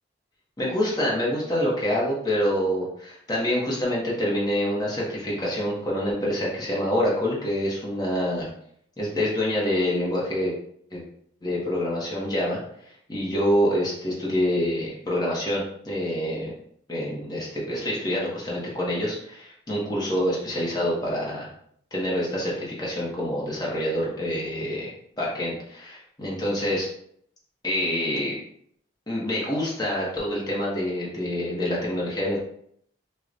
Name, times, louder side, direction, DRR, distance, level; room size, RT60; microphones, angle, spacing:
voice 1, 0.6-8.5 9.0-10.6 10.9-11.0 11.4-12.6 12.8-16.5 16.9-21.5 21.9-26.9 27.6-28.3 29.1-32.4, equal, 20° left, -5 dB, 0.7 m, -26 dB
4.6 x 2.1 x 2.5 m, 0.68 s
head